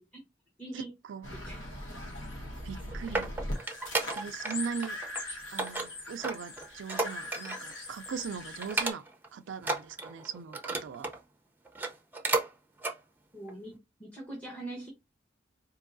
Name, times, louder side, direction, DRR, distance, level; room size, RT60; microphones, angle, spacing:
voice 1, 0.6-0.9 1.3-1.6 13.3-14.9, right 1 dB, 10° left, 0.9 m, -42 dB
sound 1, 1.2-8.9, left 1 dB, 75° left, 1.2 m, -41 dB
sound 2, 2.6-4.6 4.8-5.2 5.6-7.7 8.1-8.2 8.6-9.3 9.6-11.2 11.7-12.5 12.8-13.0 13.5-13.6, right 3 dB, 10° right, 0.6 m, -33 dB
voice 2, 2.6-3.3 4.1-5.0 5.5-9.0 9.3-11.1, right 6 dB, 70° right, 0.4 m, -39 dB
4.6 x 2.8 x 2.5 m
head